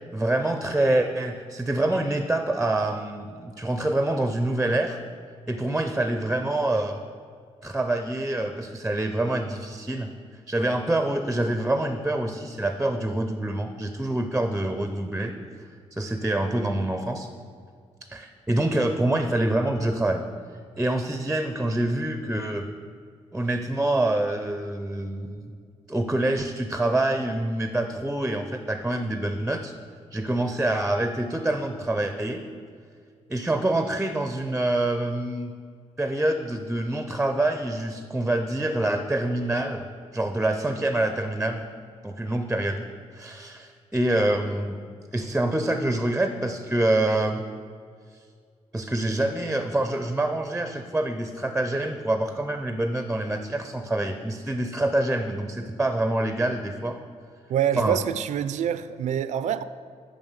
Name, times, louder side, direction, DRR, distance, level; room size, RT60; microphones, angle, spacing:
voice 1, 0.1-5.0 5.5-7.0 7.6-10.1 10.5-15.3 15.9-17.3 18.1-20.2 20.8-22.7 23.3-25.5 25.9-29.7 30.1-32.4 33.3-35.5 36.0-39.9 40.1-41.6 42.0-42.9 43.1-44.8 45.1-47.4 48.7-57.0 57.8-58.0, right 1 dB, 5° right, 0.5 m, -26 dB
voice 2, 57.5-59.6, right 9 dB, 80° right, 0.4 m, -26 dB
9.1 x 6.4 x 8.0 m
wide cardioid pair, 175°, 12 cm